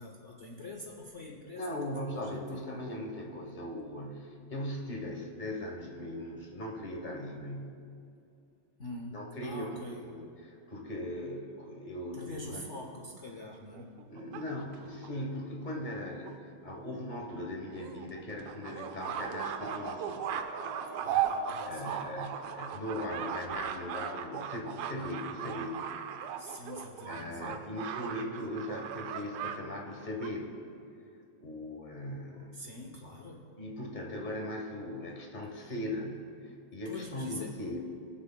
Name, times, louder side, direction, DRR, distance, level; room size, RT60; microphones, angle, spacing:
voice 1, 0.0-1.7 2.1-2.6 8.8-10.0 12.1-13.9 21.0-22.0 26.4-27.6 32.5-33.5 35.6-35.7 36.8-37.5, left 1 dB, 70° left, -1 dB, 0.6 m, -45 dB
voice 2, 1.6-7.8 9.1-12.7 14.1-20.2 21.7-25.9 26.5-26.6 27.1-30.6 31.4-32.5 33.6-37.8, left 1 dB, 35° left, 0 dB, 0.8 m, -39 dB
sound 1, 13.5-15.1 15.9-16.0 16.3-16.4 16.7-16.8 17.1-17.2 17.7-29.6 29.9-30.3, right 8 dB, 85° right, 1.5 m, -37 dB
sound 2, 19.3-23.3, right 1 dB, 30° right, 0.9 m, -47 dB
22.5 x 7.7 x 2.2 m, 2.5 s
omnidirectional pair, 2.4 m